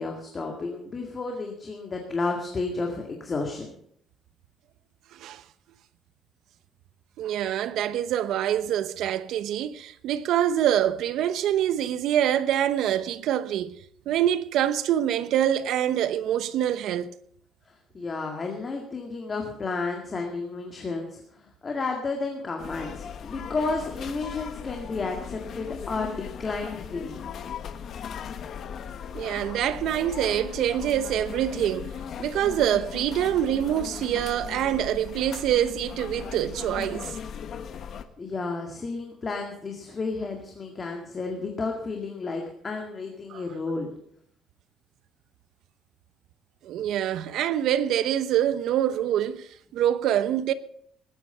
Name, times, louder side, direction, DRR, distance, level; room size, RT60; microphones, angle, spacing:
voice 1, 0.0-3.7 17.7-27.2 37.9-43.9, left 3 dB, 25° left, 2.0 m, -32 dB
voice 2, 5.1-5.4 7.2-17.1 29.1-31.9 32.2-37.1 43.3-43.4 46.6-50.5, right 11 dB, 70° right, 0.9 m, -25 dB
sound 1, 22.6-38.0, left 7 dB, 50° left, 1.2 m, -38 dB
20.0 x 9.4 x 5.6 m
cardioid pair, 145°, 0 cm